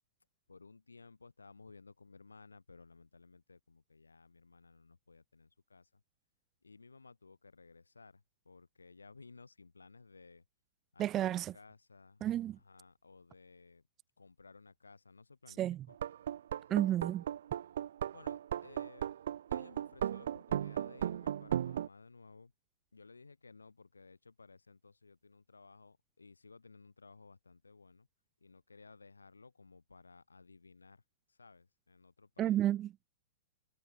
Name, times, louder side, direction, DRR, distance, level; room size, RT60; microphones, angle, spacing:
voice 1, 0.5-6.0 6.6-10.4 10.9-12.2 12.6-13.8 14.2-16.0 16.8-17.0 18.1-19.1 19.5-22.5 22.9-28.1 28.4-31.0 31.3-32.6, left 4 dB, 80° left, 4.6 m, -58 dB
voice 2, 11.0-11.5 12.2-12.6 15.6-15.9 16.7-17.2 32.4-32.9, right 12 dB, 25° right, 0.6 m, -31 dB
sound 1, 15.9-21.9, right 10 dB, 60° right, 0.8 m, -36 dB
figure-of-eight pair, 105°, 0 cm